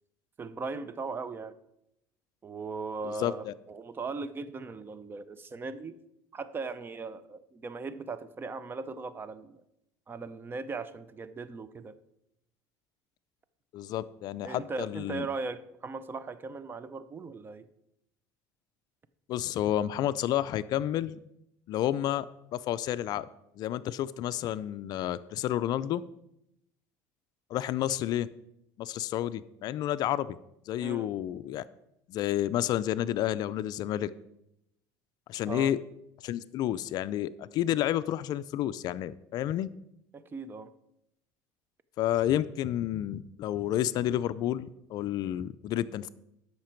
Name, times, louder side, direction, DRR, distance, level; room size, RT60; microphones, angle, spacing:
voice 1, 0.4-1.6 2.4-5.9 6.3-9.6 10.1-11.9 14.4-17.7 30.8-31.1 35.5-35.7 40.1-40.7, right 4 dB, 25° right, 14 dB, 0.6 m, -38 dB
voice 2, 3.0-3.5 13.7-15.3 19.3-21.2 21.7-22.3 22.5-23.3 23.6-26.0 27.5-28.3 28.8-30.4 30.7-31.6 32.1-34.1 35.3-35.8 36.2-39.7 42.0-46.1, left 12 dB, 55° left, 15 dB, 0.4 m, -30 dB
12.5 x 5.8 x 4.5 m, 0.82 s
cardioid pair, 115°, 8 cm